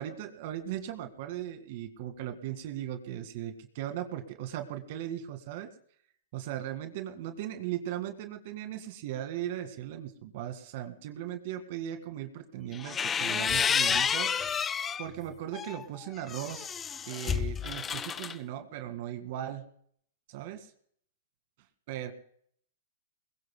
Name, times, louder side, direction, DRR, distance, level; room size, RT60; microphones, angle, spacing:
voice 1, 0.0-5.7 6.3-14.6 15.0-16.7 17.1-19.6 20.3-20.7 21.9-22.1, right 11 dB, 55° right, 7 dB, 1.9 m, -38 dB
sound 1, 12.7-15.1 15.5-18.3, left 7 dB, 20° left, 0.5 m, -30 dB
21.5 x 20.5 x 2.2 m, 0.63 s
hypercardioid pair, 135°, 0 cm